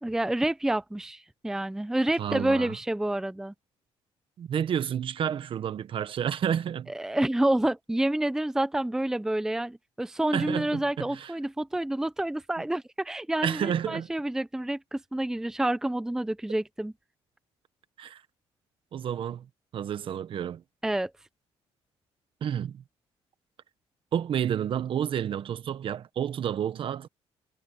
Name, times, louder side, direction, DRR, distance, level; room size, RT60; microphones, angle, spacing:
voice 1, 0.0-3.5 6.9-16.9 20.8-21.1, right 1 dB, 5° right, 0.6 m, -28 dB
voice 2, 2.2-2.7 4.4-6.9 10.3-11.3 13.4-14.1 18.0-18.2 18.9-19.5 19.7-20.6 22.4-22.8 24.1-27.1, right 9 dB, 55° right, 1.2 m, -30 dB
cardioid pair, 110°, 11 cm